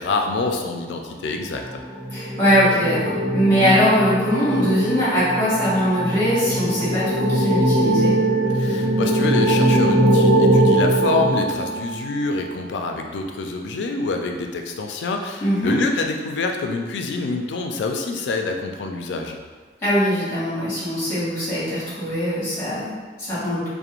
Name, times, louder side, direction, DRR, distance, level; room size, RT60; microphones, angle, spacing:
voice 1, 0.0-1.8 8.5-19.4, left 3 dB, 85° left, 3 dB, 0.3 m, -26 dB
sound 1, 1.4-12.2, right 1 dB, 20° right, 1.3 m, -21 dB
voice 2, 2.1-8.1 15.4-15.7 19.8-23.7, equal, 15° left, -11 dB, 1.0 m, -21 dB
2.4 x 2.1 x 2.9 m, 1.4 s
head